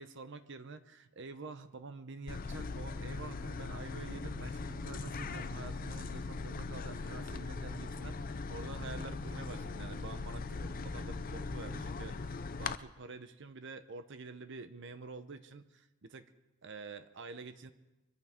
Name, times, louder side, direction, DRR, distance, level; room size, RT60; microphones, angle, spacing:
voice 1, 0.0-16.3 16.6-17.7, right 4 dB, 60° right, 10 dB, 0.8 m, -48 dB
sound 1, 2.3-12.8, left 4 dB, 45° left, 0.5 m, -40 dB
sound 2, 3.7-11.9, right 2 dB, 40° right, 1.1 m, -54 dB
24.5 x 14.5 x 3.7 m, 1.0 s
head